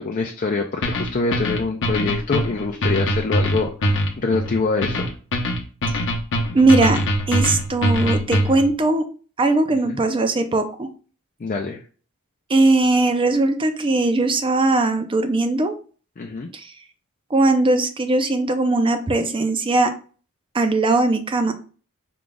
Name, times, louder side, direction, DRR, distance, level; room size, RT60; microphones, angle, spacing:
voice 1, 0.0-5.1 9.7-10.0 11.4-11.8 16.2-16.5, left 4 dB, 35° left, 2 dB, 0.4 m, -25 dB
sound 1, 0.8-8.7, equal, 60° left, 0.8 m, -22 dB
voice 2, 6.5-9.0 9.4-10.9 12.5-15.7 16.5-16.7 17.3-19.9 20.5-21.5, right 2 dB, 25° right, 8 dB, 0.5 m, -19 dB
4.7 x 2.3 x 3.9 m, 0.39 s
head